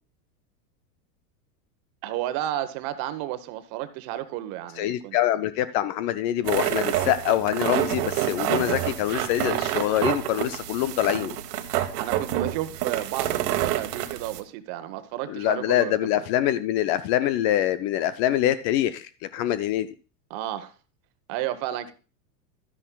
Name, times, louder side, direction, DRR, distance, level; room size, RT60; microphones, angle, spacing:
voice 1, 2.0-5.2 12.0-16.3 20.3-20.7 21.3-21.9, right 13 dB, 50° right, 1.1 m, -32 dB
voice 2, 4.8-11.4 15.3-19.9, left 12 dB, 40° left, 0.4 m, -25 dB
sound 1, 6.4-14.4, right 13 dB, 65° right, 1.3 m, -28 dB
12.0 x 9.7 x 2.3 m
hypercardioid pair, 115°, 49 cm